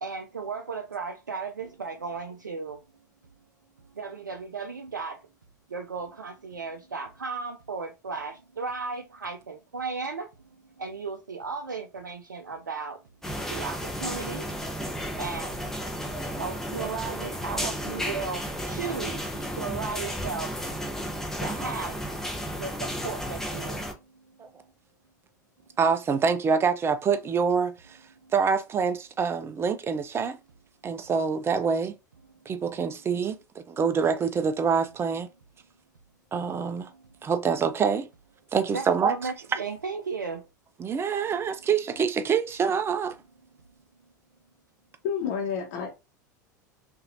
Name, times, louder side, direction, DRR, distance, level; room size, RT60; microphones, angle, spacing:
voice 1, 0.0-2.8 4.0-5.2 5.7-10.3 10.8-13.0 13.5-14.5 15.2-15.7 16.4-19.2 19.5-20.5 21.4-22.0 22.6-23.8 38.7-40.4, right 4 dB, 85° right, 0.5 m, -35 dB
sound 1, 13.2-23.9, equal, 5° left, 1.0 m, -33 dB
voice 2, 25.8-28.0 28.3-30.4 30.8-31.9 32.5-35.3 36.3-36.9 37.2-38.1 38.5-39.3 40.8-43.1, right 6 dB, 25° right, 0.6 m, -26 dB
voice 3, 45.0-45.9, left 7 dB, 55° left, 1.1 m, -29 dB
5.6 x 2.7 x 2.6 m
figure-of-eight pair, 80°, 10 cm